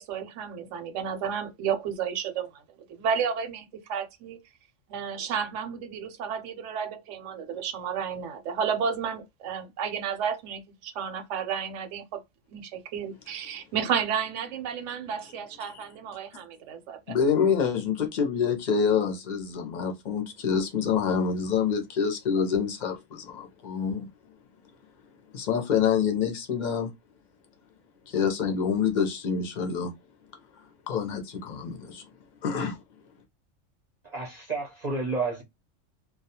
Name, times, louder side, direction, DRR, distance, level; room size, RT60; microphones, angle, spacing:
voice 1, 0.0-2.6 2.9-4.4 4.9-12.2 12.5-17.0, right 7 dB, 70° right, 0.9 m, -32 dB
voice 2, 17.1-24.1 25.3-26.9 28.1-29.9 30.5-32.1 32.4-32.8, left 6 dB, 50° left, 0.6 m, -27 dB
voice 3, 34.0-35.4, right 3 dB, 40° right, 0.6 m, -30 dB
2.3 x 2.2 x 2.7 m
omnidirectional pair, 1.3 m